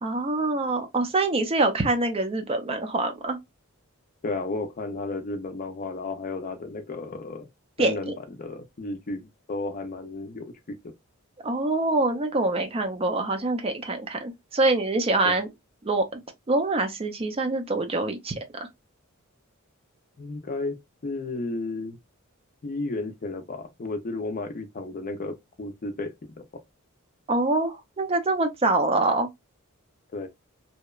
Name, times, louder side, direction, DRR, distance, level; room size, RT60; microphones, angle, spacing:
voice 1, 0.0-3.4 7.8-8.1 11.4-15.5 15.8-16.2 16.5-18.4 27.3-29.3, right 2 dB, 25° right, 0.5 m, -25 dB
voice 2, 4.2-7.5 7.8-10.9 15.2-15.4 20.2-22.0 22.6-26.4 30.1-30.3, left 3 dB, 40° left, 0.5 m, -33 dB
2.8 x 2.1 x 2.2 m
head